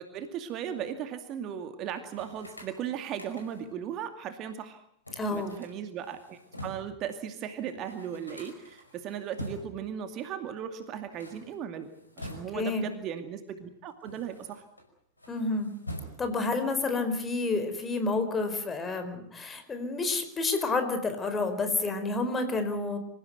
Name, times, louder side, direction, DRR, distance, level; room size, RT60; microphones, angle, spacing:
voice 1, 0.0-4.8 5.3-11.9 12.2-14.6, right 9 dB, 35° right, 8 dB, 2.4 m, -37 dB
sound 1, 2.1-3.8 5.1-7.0 7.4-7.5 7.7-9.9 11.0-12.8 13.6-14.9 15.2-16.5, equal, 85° left, 5.4 m, -45 dB
voice 2, 5.1-5.6 12.5-12.9 15.3-15.8 16.2-23.0, left 3 dB, 20° left, 8 dB, 4.6 m, -29 dB
27.0 x 16.0 x 9.3 m, 0.70 s
figure-of-eight pair, 90°, 0 cm